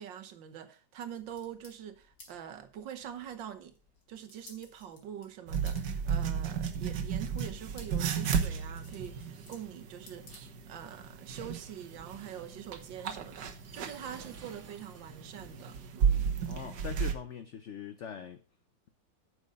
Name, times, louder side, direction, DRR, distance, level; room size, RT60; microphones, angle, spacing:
voice 1, 0.0-3.8 4.1-16.3, right 9 dB, 90° right, 1.8 m, -44 dB
sound 1, 1.0-10.9, left 3 dB, 85° left, 3.3 m, -59 dB
sound 2, 5.5-17.2, right 7 dB, 70° right, 1.6 m, -34 dB
sound 3, 13.2-16.1, right 5 dB, 50° right, 2.0 m, -55 dB
voice 2, 16.4-18.4, left 8 dB, 65° left, 0.7 m, -42 dB
9.3 x 6.4 x 5.2 m
omnidirectional pair, 2.0 m